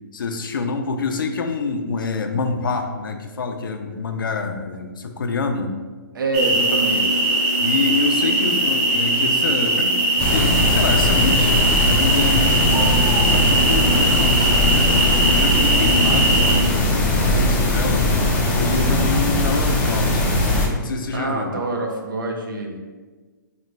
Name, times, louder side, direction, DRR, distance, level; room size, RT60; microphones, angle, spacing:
voice 1, 0.1-5.7 7.6-10.0 10.3-14.9 15.2-18.1 18.5-20.3 20.8-21.5, left 4 dB, 85° left, 5 dB, 0.4 m, -26 dB
voice 2, 6.1-7.3 18.7-19.1 21.1-22.8, right 2 dB, 75° right, 2 dB, 0.7 m, -26 dB
sound 1, 6.3-16.6, right 2 dB, 35° right, 0.8 m, -20 dB
sound 2, 10.2-20.7, left 1 dB, 10° left, 0.4 m, -20 dB
3.1 x 2.2 x 3.8 m, 1.4 s
hypercardioid pair, 145°, 11 cm